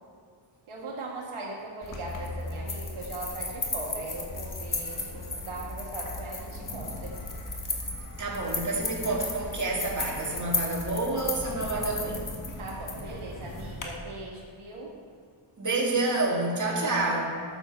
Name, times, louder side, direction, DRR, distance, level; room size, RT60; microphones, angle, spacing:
voice 1, 0.7-7.3 12.6-14.9 16.7-17.2, right 2 dB, 80° right, -2 dB, 1.9 m, -39 dB
sound 1, 1.8-13.8, left 3 dB, 40° left, 1.5 m, -35 dB
voice 2, 8.2-12.3 15.6-17.4, right 2 dB, 35° right, -2 dB, 2.0 m, -28 dB
12.5 x 7.2 x 4.5 m, 2.3 s
wide cardioid pair, 120°, 49 cm